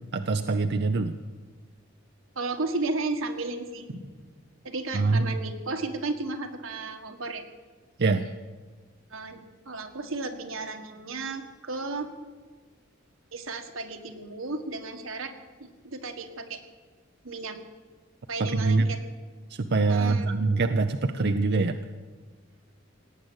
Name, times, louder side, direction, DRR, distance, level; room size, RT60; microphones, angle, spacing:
voice 1, 0.1-1.1 4.9-5.4 8.0-8.3 18.4-18.9 19.6-21.8, right 3 dB, 55° right, 7 dB, 0.6 m, -24 dB
voice 2, 2.4-4.0 4.6-7.4 9.1-9.4 9.7-12.1 13.3-15.3 15.6-16.6 17.2-17.6 18.3-19.0 19.9-20.3, right 3 dB, 85° right, 6 dB, 1.6 m, -34 dB
18.0 x 8.9 x 8.1 m, 1.4 s
head